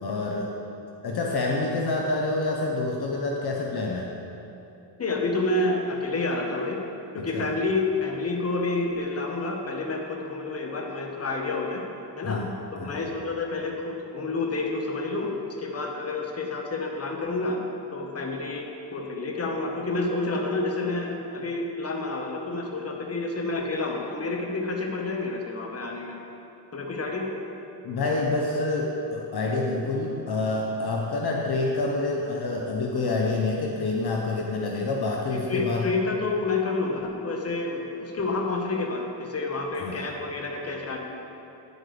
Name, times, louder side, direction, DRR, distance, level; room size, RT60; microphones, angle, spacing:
voice 1, 0.0-0.6 1.0-4.1 7.2-7.5 12.2-12.5 12.8-13.0 27.8-35.9 39.8-40.0, left 2 dB, 60° left, 0 dB, 0.8 m, -27 dB
voice 2, 5.0-6.8 7.1-11.8 12.2-12.4 12.7-15.3 15.6-17.6 17.9-18.6 18.9-26.1 26.7-27.3 35.3-41.0, left 3 dB, 35° left, 1 dB, 1.1 m, -29 dB
9.9 x 8.0 x 3.3 m, 2.8 s
cardioid pair, 105°, 43 cm